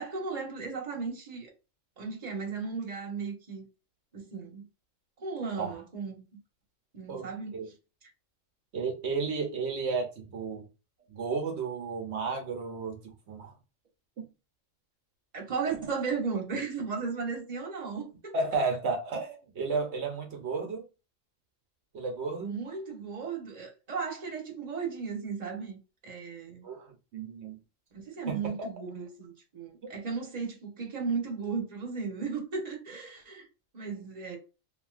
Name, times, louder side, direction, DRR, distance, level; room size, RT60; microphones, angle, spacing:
voice 1, 0.0-1.5 2.0-3.6 4.1-4.7 5.2-6.2 6.9-7.7 15.3-18.3 22.4-26.7 27.9-33.5 33.7-34.4, right 5 dB, 35° right, 1.0 m, -35 dB
voice 2, 7.1-7.7 8.7-10.6 11.1-13.5 18.3-20.8 21.9-22.5 26.6-26.9 27.1-27.6 28.3-28.4, right 4 dB, 60° right, 1.0 m, -33 dB
2.9 x 2.7 x 2.4 m
omnidirectional pair, 1.3 m